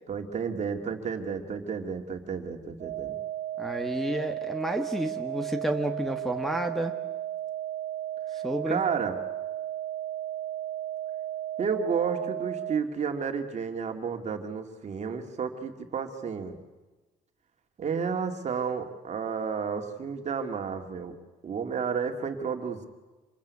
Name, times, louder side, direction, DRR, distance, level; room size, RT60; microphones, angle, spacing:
voice 1, 0.1-3.2 8.3-9.2 11.6-16.6 17.8-21.1 21.4-22.9, right 6 dB, 40° right, 5 dB, 2.6 m, -31 dB
sound 1, 2.8-12.8, right 12 dB, 60° right, 1.1 m, -34 dB
voice 2, 3.6-7.0 8.3-8.8, right 1 dB, ahead, 3 dB, 1.4 m, -30 dB
26.5 x 21.0 x 8.5 m, 1.2 s
cardioid pair, 110°, 17 cm